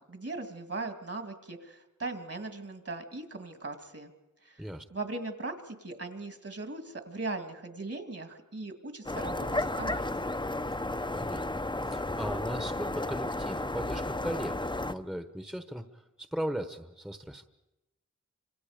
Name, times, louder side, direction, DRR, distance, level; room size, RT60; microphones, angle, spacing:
voice 1, 0.0-4.1 4.4-4.6 4.9-10.3, right 3 dB, 50° right, 6 dB, 2.4 m, -39 dB
sound 1, 9.1-14.9, left 2 dB, 15° left, 0.8 m, -33 dB
voice 2, 11.1-17.4, equal, ahead, 8 dB, 1.1 m, -38 dB
29.5 x 26.0 x 5.1 m, 1.0 s
wide cardioid pair, 75°, 30 cm